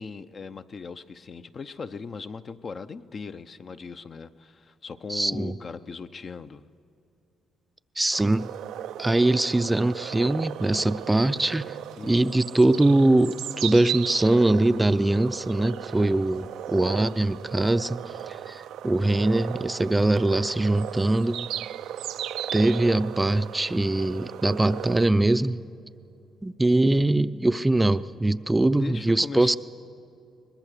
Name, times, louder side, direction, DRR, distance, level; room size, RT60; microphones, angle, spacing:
voice 1, 0.0-6.6 12.0-12.3 28.6-29.6, left 5 dB, 45° left, 10 dB, 0.6 m, -39 dB
voice 2, 5.1-5.5 8.0-8.5 9.0-11.7 12.1-18.0 18.3-21.5 22.5-25.6 26.4-29.6, right 2 dB, 15° right, 12 dB, 0.5 m, -22 dB
sound 1, 8.1-25.1, right 11 dB, 85° right, 0.5 m, -36 dB
22.5 x 20.5 x 6.6 m, 2.6 s
cardioid pair, 90°, 0 cm